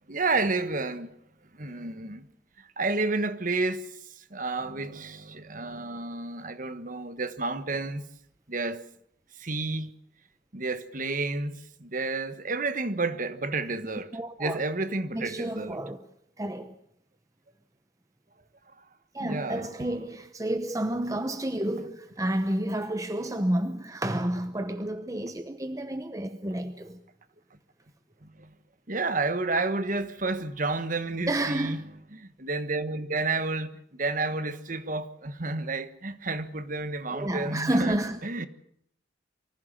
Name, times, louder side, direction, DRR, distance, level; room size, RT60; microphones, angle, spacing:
voice 1, 0.1-1.1 1.5-2.3 2.6-8.0 8.5-8.9 9.4-9.9 10.5-14.1 14.4-15.8 19.2-19.9 28.2-28.5 28.9-31.8 32.1-38.0 38.2-38.5, right 3 dB, 45° right, 1.4 m, -31 dB
voice 2, 14.1-14.6 15.1-16.1 16.4-16.8 19.1-27.0 31.3-31.8 37.1-38.2, right 1 dB, 15° right, 0.9 m, -30 dB
24.0 x 15.5 x 7.6 m
head